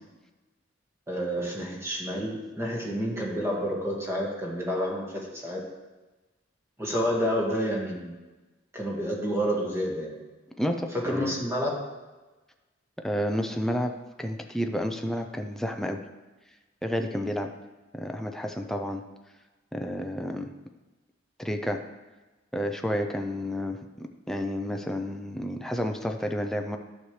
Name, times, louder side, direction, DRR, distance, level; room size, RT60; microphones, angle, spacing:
voice 1, 1.1-5.6 6.8-8.2 8.7-10.2 10.9-11.8, equal, 15° right, -2 dB, 1.8 m, -29 dB
voice 2, 10.6-11.3 13.0-13.9 14.2-16.0 16.8-17.5 17.9-19.0 19.7-20.5 21.4-21.8 22.5-26.8, equal, ahead, 4 dB, 0.5 m, -30 dB
11.5 x 6.7 x 3.2 m, 1.2 s
head